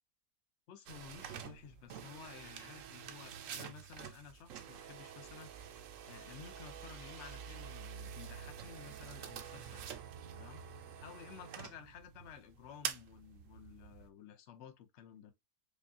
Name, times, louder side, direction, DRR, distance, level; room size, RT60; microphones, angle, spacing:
voice 1, 0.7-5.6 6.1-9.8 10.4-10.6 11.0-15.3, left 8 dB, 60° left, 0.8 m, -54 dB
sound 1, 0.9-14.1, right 8 dB, 65° right, 0.8 m, -47 dB
5.2 x 2.4 x 2.5 m
omnidirectional pair, 1.7 m